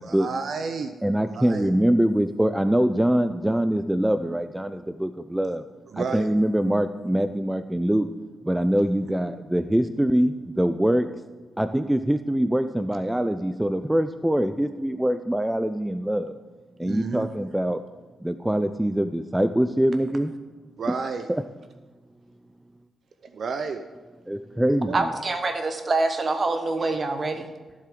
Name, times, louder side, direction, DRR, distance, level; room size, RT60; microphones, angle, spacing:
voice 1, 0.0-1.0 1.3-1.7 5.9-6.3 16.8-17.3 20.8-21.3 23.2-23.9 24.8-25.0, right 4 dB, 60° right, 0.6 m, -31 dB
voice 2, 1.0-5.6 5.9-8.1 8.4-11.1 11.6-16.4 16.8-17.8 18.2-20.3 21.3-21.4 24.3-25.1, right 1 dB, 10° right, 0.4 m, -23 dB
voice 3, 24.9-27.5, right 3 dB, 40° right, 1.3 m, -25 dB
15.0 x 7.5 x 3.7 m
cardioid pair, 85°, 0 cm